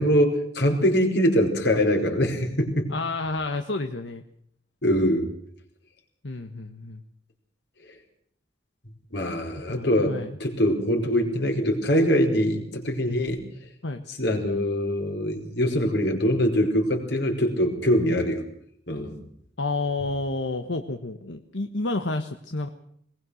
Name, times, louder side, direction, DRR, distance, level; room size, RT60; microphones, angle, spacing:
voice 1, 0.0-2.9 4.8-5.3 9.1-13.4 14.1-18.4 18.9-19.2, equal, 65° left, 3 dB, 4.8 m, -23 dB
voice 2, 2.9-4.2 6.2-7.0 9.7-10.4 13.8-14.0 19.6-22.7, left 2 dB, 85° left, 6 dB, 1.4 m, -30 dB
21.0 x 20.5 x 6.4 m, 0.67 s
head